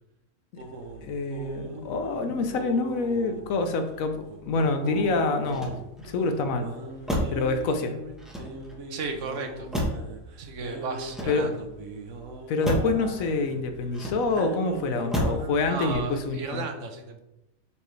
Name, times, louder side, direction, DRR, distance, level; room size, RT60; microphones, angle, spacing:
sound 1, 0.6-15.9, right 1 dB, 85° right, 1.3 m, -40 dB
voice 1, 1.0-5.7 6.0-6.7 7.3-8.0 11.3-11.5 12.5-16.6, left 3 dB, 85° left, 6 dB, 1.1 m, -26 dB
Motor vehicle (road), 5.4-6.2 7.0-7.5 8.2-8.9 9.7-10.2 11.0-11.7 12.6-13.0 13.9-14.5 15.1-15.5 15.9-16.3, equal, ahead, 1.1 m, -31 dB
voice 2, 8.9-9.7 10.4-11.6 15.7-17.2, right 4 dB, 65° right, 5 dB, 1.2 m, -34 dB
7.1 x 4.6 x 3.2 m, 0.90 s
omnidirectional pair, 1.4 m